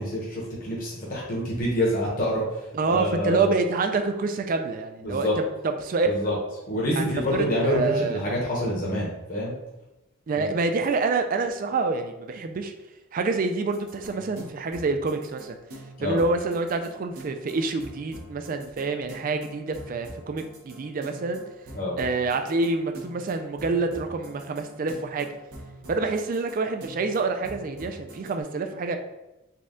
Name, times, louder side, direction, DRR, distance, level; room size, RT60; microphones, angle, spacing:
voice 1, 0.0-3.5 5.0-5.4 6.1-6.3 6.7-9.5 10.3-10.5 16.0-16.2 21.7-22.0, equal, 40° left, -5 dB, 0.9 m, -27 dB
voice 2, 2.7-6.1 7.0-7.1 7.3-8.2 10.3-12.7 13.1-15.6 16.0-21.4 22.0-25.3 25.9-29.0, right 3 dB, 40° right, 6 dB, 0.3 m, -27 dB
sound 1, 13.7-28.3, right 1 dB, 85° right, 1.0 m, -44 dB
4.2 x 2.3 x 3.7 m, 0.97 s
head